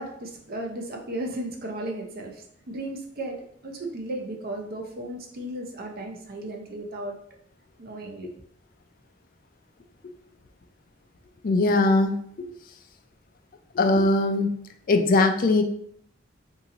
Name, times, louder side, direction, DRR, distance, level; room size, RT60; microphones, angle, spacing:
voice 1, 0.0-7.2 7.8-8.3, right 1 dB, 55° right, 1 dB, 0.7 m, -35 dB
voice 2, 11.4-12.5 13.8-14.5 14.9-15.6, left 2 dB, 45° left, 6 dB, 0.4 m, -21 dB
2.9 x 2.6 x 3.8 m, 0.66 s
head